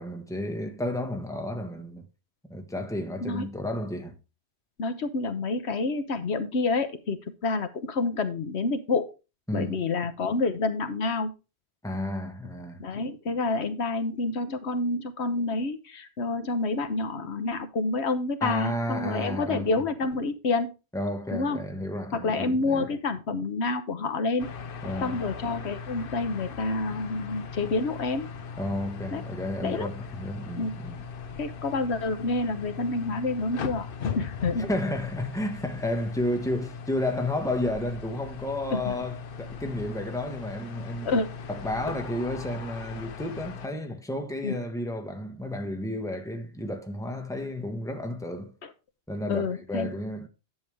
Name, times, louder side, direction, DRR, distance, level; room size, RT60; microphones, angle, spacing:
voice 1, 0.0-2.1 2.5-4.1 9.5-9.8 11.8-12.8 18.4-19.7 20.9-22.8 24.8-25.2 28.6-31.0 34.6-41.1 41.5-48.5 49.1-50.3, left 1 dB, 5° left, 1.2 m, -32 dB
voice 2, 4.8-9.1 9.5-11.3 12.8-20.7 21.3-21.6 22.1-24.5 25.0-28.3 29.1-29.2 29.6-29.9 30.6-30.7 31.4-33.9 34.2-34.7 38.7-39.0 41.0-41.3 44.4-44.6 48.6-48.7 49.3-49.9, left 3 dB, 75° left, 1.3 m, -28 dB
sound 1, 24.4-43.7, left 6 dB, 60° left, 0.8 m, -39 dB
10.5 x 7.1 x 3.4 m
omnidirectional pair, 1.1 m